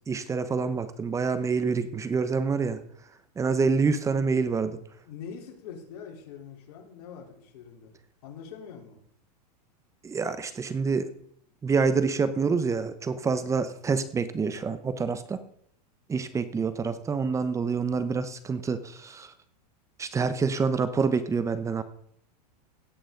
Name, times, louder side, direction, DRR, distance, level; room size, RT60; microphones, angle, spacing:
voice 1, 0.1-2.8 3.4-4.8 10.0-11.1 11.6-15.4 16.1-19.3 20.0-21.8, right 5 dB, 15° right, 13 dB, 0.9 m, -27 dB
voice 2, 5.0-7.9 8.2-9.0, left 7 dB, 65° left, 1 dB, 3.8 m, -43 dB
17.5 x 7.9 x 3.9 m, 0.67 s
supercardioid pair, 130°, 21 cm